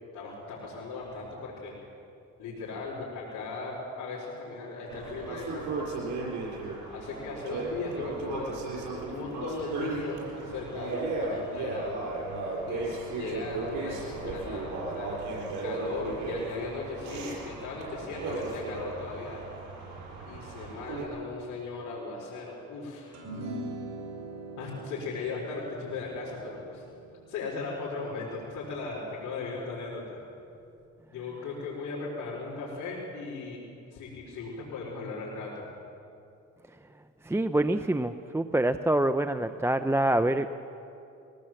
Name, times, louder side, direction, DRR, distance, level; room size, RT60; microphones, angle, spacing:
voice 1, 0.1-1.7 2.4-6.0 6.9-8.6 8.9-12.0 12.6-15.3 15.6-19.4 20.3-23.1 24.6-26.8 27.3-30.2 31.1-33.6 33.9-35.6, left 3 dB, 80° left, -7 dB, 5.1 m, -37 dB
sound 1, 4.9-21.0, right 3 dB, 90° right, 6.4 m, -36 dB
sound 2, 23.1-29.7, right 2 dB, 65° right, 5.8 m, -43 dB
voice 2, 37.2-40.5, right 1 dB, 10° right, 10 dB, 0.6 m, -26 dB
22.5 x 19.0 x 7.7 m, 2.7 s
cardioid pair, 90°, 30 cm